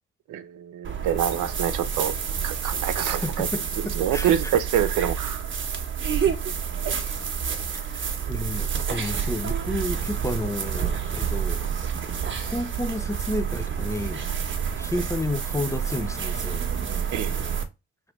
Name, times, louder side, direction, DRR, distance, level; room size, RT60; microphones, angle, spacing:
voice 1, 0.3-2.1 2.4-3.5 4.0-5.4 17.1-17.3, right 10 dB, 80° right, 0.7 m, -26 dB
sound 1, 0.8-17.6, right 7 dB, 40° right, 1.1 m, -28 dB
voice 2, 2.7-3.0 3.2-3.5 3.8-4.5 7.9-11.6 12.5-14.3 14.8-16.6, left 1 dB, 10° left, 0.6 m, -31 dB
4.7 x 3.2 x 3.1 m
cardioid pair, 90°, 30 cm